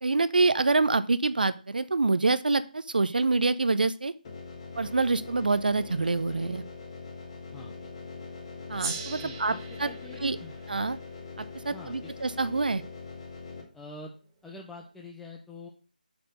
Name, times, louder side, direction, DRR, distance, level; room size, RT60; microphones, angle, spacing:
voice 1, 0.0-4.1 4.8-6.6 8.7-9.5 9.8-9.9 10.2-10.4 10.7-11.0 11.6-12.8, right 3 dB, 70° right, 14 dB, 0.8 m, -26 dB
sound 1, 4.2-13.6, left 4 dB, 30° left, 2.1 m, -42 dB
Gong, 8.8-13.5, right 4 dB, 25° right, 1.4 m, -42 dB
voice 2, 9.2-10.6 11.6-12.1 13.7-14.2 14.4-15.7, left 2 dB, 5° left, -1 dB, 0.5 m, -45 dB
8.1 x 4.3 x 6.6 m, 0.35 s
figure-of-eight pair, 160°, 5 cm